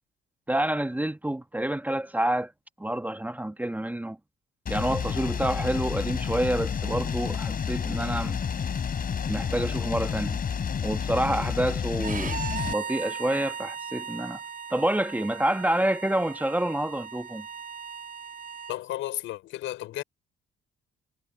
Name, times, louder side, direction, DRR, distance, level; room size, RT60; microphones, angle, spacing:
voice 1, 0.5-2.5 2.8-4.2 4.7-8.4 9.3-10.5 10.8-12.4 12.7-14.4 14.7-17.5, right 1 dB, 10° right, 1.2 m, -28 dB
sound 1, 4.7-12.7, left 7 dB, 50° left, 3.9 m, -30 dB
Bowed string instrument, 12.0-18.8, right 6 dB, 45° right, 4.6 m, -37 dB
voice 2, 18.7-20.0, left 14 dB, 90° left, 5.1 m, -33 dB
cardioid pair, 90°, 20 cm